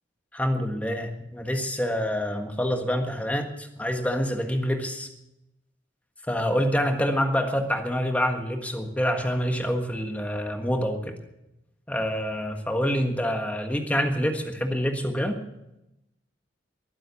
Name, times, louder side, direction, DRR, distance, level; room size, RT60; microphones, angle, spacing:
voice 1, 0.3-5.1 6.3-11.1 11.9-15.4, equal, 10° left, 4 dB, 1.5 m, -26 dB
22.5 x 7.8 x 6.9 m, 0.89 s
head